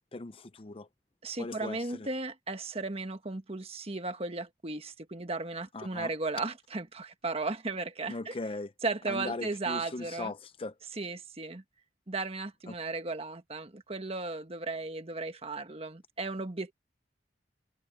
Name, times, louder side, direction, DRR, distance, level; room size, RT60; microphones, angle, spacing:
voice 1, 0.1-0.9 1.4-2.1 5.7-6.1 8.1-8.7 9.1-10.7 12.7-12.8, left 2 dB, 30° left, 0.5 m, -39 dB
voice 2, 1.2-8.4 8.8-10.3 10.9-11.6 12.1-16.7, right 3 dB, 35° right, 1.4 m, -35 dB
head